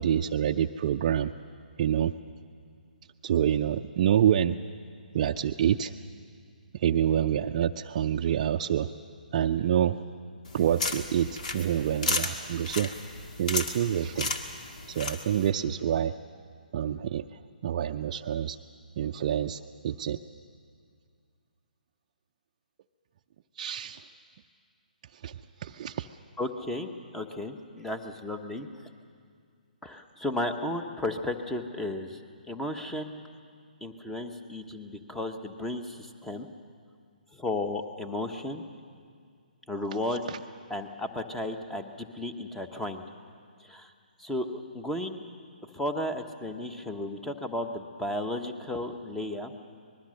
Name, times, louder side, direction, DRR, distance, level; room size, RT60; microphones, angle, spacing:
voice 1, 0.0-1.3 1.8-2.1 3.2-4.6 5.1-6.0 6.7-8.9 9.3-10.0 10.5-12.9 13.4-14.3 14.9-16.1 16.7-18.6 19.0-20.2 23.6-24.0 25.1-26.1 40.3-40.4, right 10 dB, 45° right, 3 dB, 0.6 m, -27 dB
sound 1, 10.5-15.5, left 3 dB, 55° left, 2.0 m, -34 dB
voice 2, 26.4-28.7 29.8-33.2 33.8-36.5 37.3-38.6 39.7-40.2 40.7-43.0 43.6-43.9 44.2-45.2 45.7-49.5, left 1 dB, 5° left, 7 dB, 1.2 m, -34 dB
25.5 x 20.5 x 6.5 m, 2.2 s
figure-of-eight pair, 135°, 5 cm